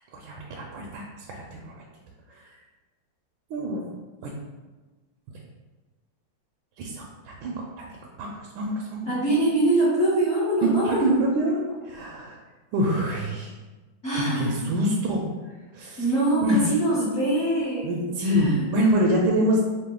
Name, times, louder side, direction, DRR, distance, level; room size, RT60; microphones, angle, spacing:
voice 1, 0.1-1.0 1.5-1.6 3.5-3.9 4.2-4.3 6.8-7.6 8.2-8.3 8.6-9.1 10.6-12.4 12.7-13.5 14.1-15.2 15.7-16.0 16.4-16.6 17.8-19.6, right 1 dB, 75° right, -1 dB, 1.3 m, -25 dB
voice 2, 9.1-11.2 14.0-14.7 16.0-17.9 18.2-18.6, right 1 dB, 45° left, -11 dB, 1.2 m, -24 dB
4.8 x 2.4 x 3.7 m, 1.2 s
omnidirectional pair, 2.4 m